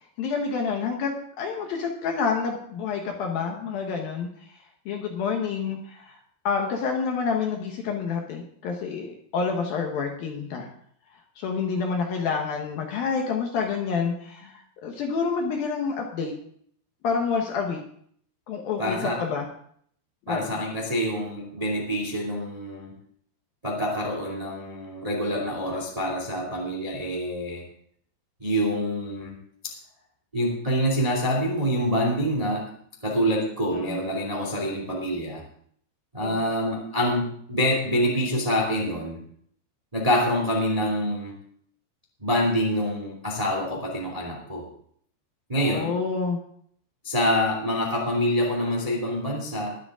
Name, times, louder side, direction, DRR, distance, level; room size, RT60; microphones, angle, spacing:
voice 1, 0.2-1.1 1.4-4.3 4.9-6.2 6.4-10.7 11.4-16.3 17.0-17.8 18.5-19.5 20.3-20.5 33.7-34.0 36.2-36.6 45.6-46.4, left 5 dB, 65° left, 2 dB, 2.5 m, -28 dB
voice 2, 18.8-19.2 20.3-22.9 23.6-27.6 28.4-29.3 29.6-29.7 30.3-32.7 33.0-35.4 36.1-39.2 39.9-41.4 42.2-44.7 45.5-45.9 47.0-49.8, equal, 15° right, 0 dB, 1.1 m, -26 dB
21.5 x 8.1 x 3.7 m, 0.63 s
omnidirectional pair, 5.4 m